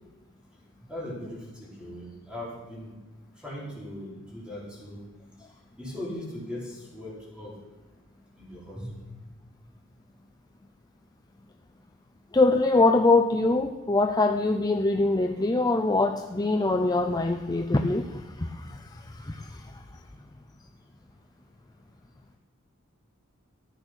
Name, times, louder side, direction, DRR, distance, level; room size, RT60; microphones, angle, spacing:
voice 1, 0.9-3.0 3.3-5.0 5.8-7.6 8.3-9.0, left 1 dB, 5° right, -6 dB, 4.8 m, -39 dB
voice 2, 12.3-19.8, left 2 dB, 20° left, 5 dB, 0.6 m, -24 dB
14.5 x 8.9 x 6.3 m, 1.2 s
head